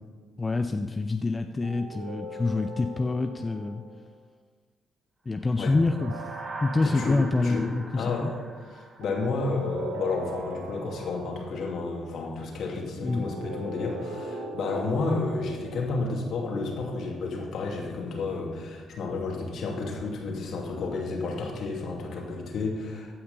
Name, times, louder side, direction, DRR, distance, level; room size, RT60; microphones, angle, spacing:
voice 1, 0.4-3.8 5.3-6.3 6.6-8.3 13.0-13.3, left 3 dB, 25° left, 7 dB, 0.6 m, -26 dB
sound 1, 1.6-4.1 5.8-7.6 9.0-11.7 13.1-17.6, right 2 dB, 85° right, 1.2 m, -40 dB
sound 2, 5.5-10.0, right 2 dB, 25° right, 1.1 m, -43 dB
voice 2, 6.8-7.7 8.0-23.1, left 3 dB, 65° left, -1 dB, 2.5 m, -31 dB
15.0 x 5.8 x 5.3 m, 1.5 s
supercardioid pair, 65°, 0 cm